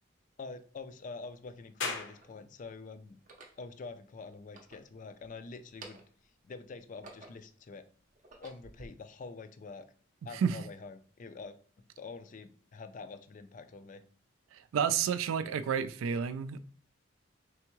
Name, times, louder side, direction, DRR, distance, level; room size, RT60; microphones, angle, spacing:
voice 1, 0.4-3.2 3.6-6.0 6.4-7.8 8.4-9.9 10.2-11.6 12.0-14.0, left 4 dB, 40° left, 0.3 m, -46 dB
sound 1, 0.6-0.7 1.6-2.4 3.1-3.6 4.4-5.3 5.6-6.3 6.7-7.6 8.1-8.9, right 3 dB, 40° right, 0.6 m, -53 dB
sound 2, 1.8-14.9, left 4 dB, 65° left, 0.7 m, -49 dB
voice 2, 14.5-16.6, right 7 dB, 85° right, 0.3 m, -30 dB
3.4 x 3.4 x 3.0 m
head